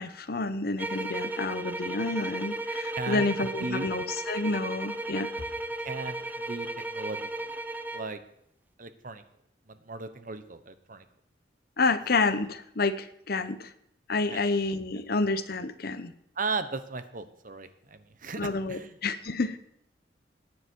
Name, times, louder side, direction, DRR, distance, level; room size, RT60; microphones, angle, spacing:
voice 1, 0.0-5.3 11.8-13.7 14.1-16.1 18.4-19.6, left 3 dB, 60° left, 12 dB, 0.9 m, -29 dB
sound 1, 0.8-8.1, right 2 dB, 10° right, 0.6 m, -35 dB
voice 2, 2.9-3.3 3.6-3.9 5.8-7.5 7.9-8.2 8.8-9.2 9.7-11.0 14.3-14.4 16.4-19.0, right 3 dB, 50° right, 10 dB, 1.1 m, -36 dB
19.5 x 9.7 x 4.7 m, 0.74 s
head